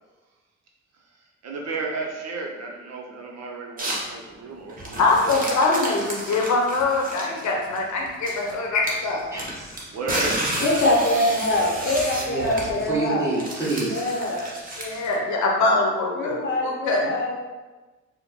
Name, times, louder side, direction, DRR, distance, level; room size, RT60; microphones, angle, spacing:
voice 1, 0.9-5.2 9.9-12.2, right 3 dB, 60° right, 0 dB, 0.7 m, -34 dB
sound 1, 3.8-4.1 4.7-8.5 8.8-15.2, right 1 dB, 30° right, 0.9 m, -31 dB
voice 2, 5.0-9.3 11.8-12.0 14.8-17.1, left 3 dB, 70° left, 0 dB, 0.8 m, -23 dB
voice 3, 9.3-9.9 12.2-14.0, right 3 dB, 10° right, -7 dB, 1.3 m, -28 dB
voice 4, 10.6-13.3 13.9-14.5 16.2-17.5, left 1 dB, 35° left, -1 dB, 0.8 m, -24 dB
4.4 x 2.1 x 2.9 m, 1.2 s
cardioid pair, 90°, 30 cm